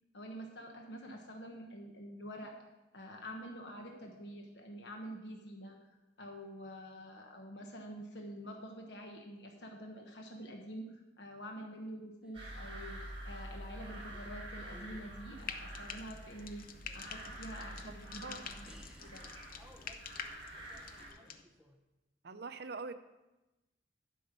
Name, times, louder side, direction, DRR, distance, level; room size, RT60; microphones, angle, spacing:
voice 1, 0.1-2.6 2.9-18.7 19.0-19.2, equal, 70° left, 2 dB, 1.2 m, -47 dB
sound 1, 12.2-13.3 13.6-14.4 14.7-16.3 16.7-18.3 18.6-21.8, equal, 5° right, 0.9 m, -62 dB
sound 2, 12.3-21.1, right 1 dB, 35° right, 3.5 m, -47 dB
Frying (food), 15.4-21.4, left 7 dB, 55° left, 0.7 m, -48 dB
voice 2, 17.9-18.5 22.2-22.9, right 4 dB, 65° right, 10 dB, 0.6 m, -44 dB
12.0 x 5.4 x 6.8 m, 1.0 s
head